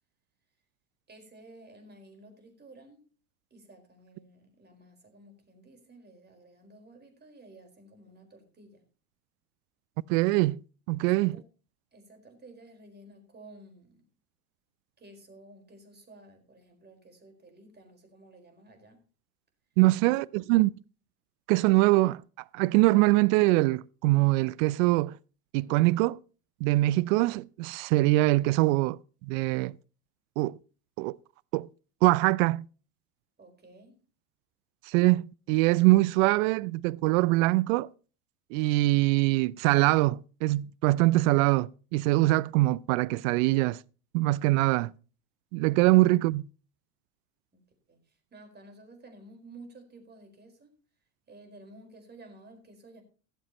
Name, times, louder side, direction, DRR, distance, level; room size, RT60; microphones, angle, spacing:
voice 1, 1.1-3.0 3.5-8.8 11.0-11.4 11.9-14.0 15.0-19.0 19.9-20.2 33.4-34.0 47.5-50.7 51.3-53.0, right 2 dB, 25° right, 4.7 m, -53 dB
voice 2, 10.1-10.6 10.9-11.4 19.8-20.7 21.5-22.2 22.5-25.2 25.5-26.2 26.6-29.7 30.4-30.6 31.0-31.2 31.5-31.7 32.0-32.6 34.9-37.9 38.5-43.8 44.1-44.9 45.5-46.4, right 20 dB, 65° right, 0.5 m, -23 dB
15.5 x 12.5 x 3.0 m
hypercardioid pair, 100°, 44 cm